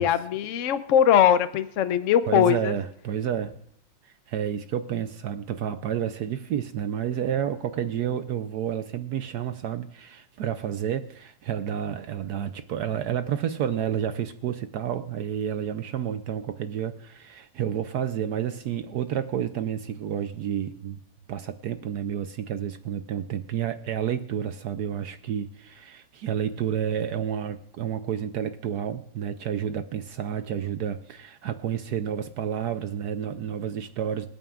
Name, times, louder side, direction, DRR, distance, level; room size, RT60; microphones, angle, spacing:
voice 1, 0.0-2.7, left 9 dB, 80° left, 12 dB, 0.6 m, -21 dB
voice 2, 2.3-3.6 4.0-21.0 21.3-34.3, right 9 dB, 70° right, 10 dB, 0.9 m, -30 dB
27.0 x 9.0 x 2.4 m, 0.71 s
omnidirectional pair, 2.2 m